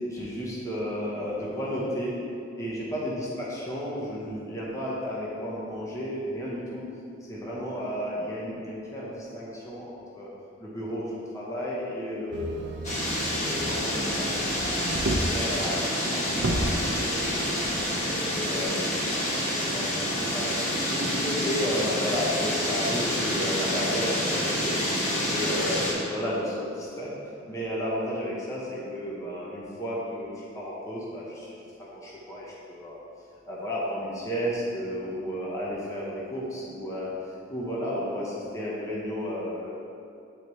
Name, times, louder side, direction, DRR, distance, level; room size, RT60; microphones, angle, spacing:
voice 1, 0.1-2.1 2.6-6.8 7.3-10.3 10.6-12.5 13.0-17.5 17.8-20.6 20.9-24.8 25.1-27.1 27.5-33.0 33.5-37.1 37.5-39.7, equal, 15° left, -7 dB, 1.0 m, -33 dB
Motor vehicle (road), 12.3-15.5 15.9-16.0 16.3-17.8 18.6-18.7, right 1 dB, 65° right, 0.6 m, -32 dB
sound 1, 12.8-25.9, equal, 40° left, 1.3 m, -28 dB
8.8 x 4.0 x 3.2 m, 2.5 s
head